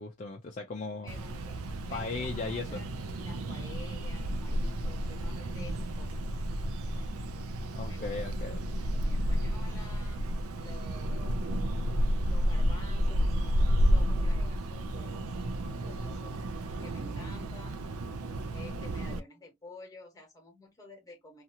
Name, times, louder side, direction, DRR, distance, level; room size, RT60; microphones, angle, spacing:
voice 1, 0.0-1.1 1.9-2.8 7.7-8.6, left 3 dB, 35° left, 0.4 m, -37 dB
voice 2, 1.0-1.6 1.9-6.2 7.9-8.4 8.7-10.2 10.6-11.5 12.2-16.4 16.8-18.0 18.5-21.4, left 2 dB, 15° left, 1.0 m, -51 dB
sound 1, 1.1-19.2, equal, 75° right, 0.5 m, -31 dB
2.7 x 2.4 x 2.8 m
head